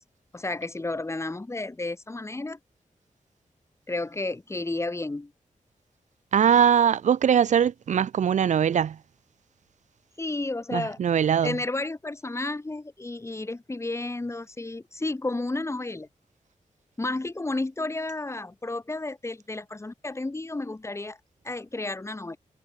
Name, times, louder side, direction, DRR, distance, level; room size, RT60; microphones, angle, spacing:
voice 1, 0.3-2.6 3.9-5.3 10.2-11.0 11.4-16.1 17.0-21.2 21.4-22.4, left 2 dB, 20° left, 1.7 m, -32 dB
voice 2, 6.3-9.0 10.7-11.5, right 8 dB, 65° right, 0.4 m, -21 dB
wide cardioid pair, 125°, 14 cm